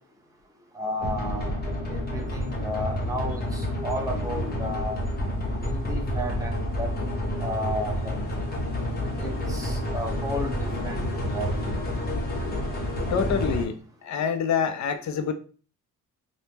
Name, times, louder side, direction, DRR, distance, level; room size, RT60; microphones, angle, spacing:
voice 1, 0.7-1.6 1.9-5.0 5.6-6.9 7.4-8.2 9.2-11.8, equal, 10° right, 0 dB, 0.7 m, -33 dB
sound 1, 1.0-13.6, left 1 dB, 30° left, 0.8 m, -29 dB
voice 2, 13.1-13.8 14.0-15.3, left 6 dB, 55° left, 9 dB, 0.5 m, -26 dB
3.4 x 2.1 x 2.8 m, 0.40 s
cardioid pair, 120°, 34 cm